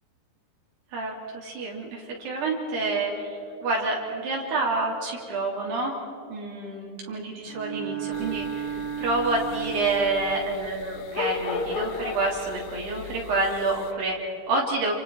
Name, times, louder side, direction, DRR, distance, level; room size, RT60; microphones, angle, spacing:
voice 1, 0.9-5.9 6.3-14.9, right 2 dB, 75° right, -3 dB, 5.2 m, -28 dB
Bowed string instrument, 7.4-10.6, right 9 dB, 50° right, 2.0 m, -34 dB
sound 1, 8.1-13.9, left 5 dB, 80° left, 3.1 m, -36 dB
29.0 x 28.5 x 4.7 m, 2.9 s
omnidirectional pair, 4.8 m